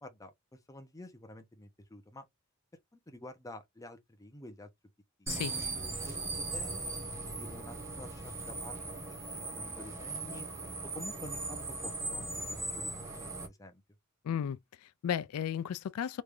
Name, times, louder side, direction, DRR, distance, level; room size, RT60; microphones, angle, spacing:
voice 1, 0.0-2.3 2.9-4.7 5.2-5.3 6.1-8.8 9.3-10.5 10.8-13.8, left 1 dB, 15° left, 0.6 m, -49 dB
sound 1, 5.3-13.5, right 2 dB, 15° right, 1.0 m, -39 dB
voice 2, 14.2-16.2, left 8 dB, 90° left, 0.3 m, -35 dB
3.4 x 3.2 x 2.5 m
head